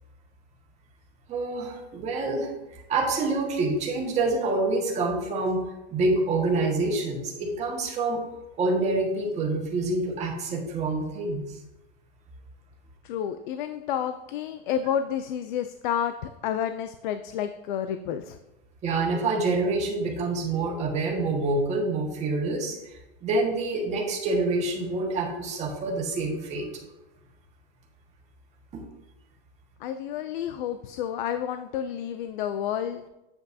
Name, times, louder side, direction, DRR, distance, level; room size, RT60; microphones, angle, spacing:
voice 1, 1.3-5.6 5.9-8.2 8.6-11.4 18.8-22.9 23.2-26.7 28.7-28.8, right 2 dB, 20° right, -2 dB, 1.6 m, -27 dB
voice 2, 13.0-18.4 29.8-33.0, left 9 dB, 50° left, 9 dB, 0.5 m, -30 dB
8.6 x 7.7 x 2.7 m, 0.98 s
supercardioid pair, 155°, 31 cm